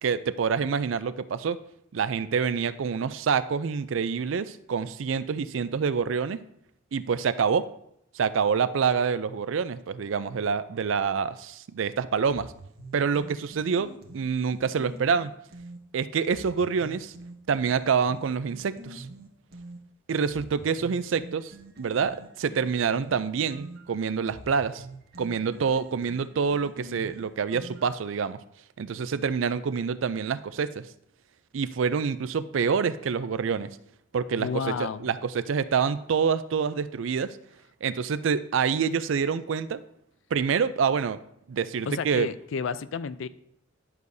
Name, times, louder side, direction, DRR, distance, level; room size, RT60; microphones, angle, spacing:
voice 1, 0.0-1.6 1.9-6.4 6.9-7.7 8.1-12.5 12.9-15.3 15.9-17.1 17.5-19.1 20.1-21.5 21.8-24.8 25.2-28.4 28.8-30.8 31.5-33.7 34.1-37.4 37.8-39.8 40.3-41.2 41.5-42.3, right 6 dB, 80° right, 14 dB, 0.4 m, -27 dB
sound 1, 12.3-15.8 16.3-19.8 20.3-28.1, right 2 dB, 55° right, 1.2 m, -46 dB
voice 2, 34.4-35.1 41.9-43.3, left 5 dB, 75° left, 15 dB, 0.4 m, -31 dB
11.0 x 6.5 x 2.7 m, 0.74 s
head